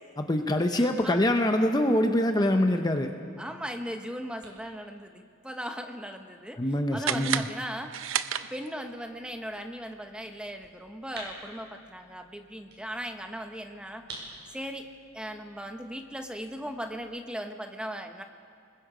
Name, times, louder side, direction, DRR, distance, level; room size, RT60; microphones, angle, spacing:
voice 1, 0.2-3.1 6.6-7.4, left 1 dB, 20° left, 5 dB, 0.8 m, -24 dB
voice 2, 0.7-1.2 3.4-6.6 6.9-7.9 8.5-14.0 14.5-14.9 15.1-18.2, equal, 5° right, 5 dB, 1.0 m, -38 dB
sound 1, 3.5-17.0, right 2 dB, 60° right, 5.3 m, -52 dB
sound 2, 7.0-8.9, right 9 dB, 85° right, 0.6 m, -32 dB
28.0 x 21.0 x 5.1 m, 2.3 s
head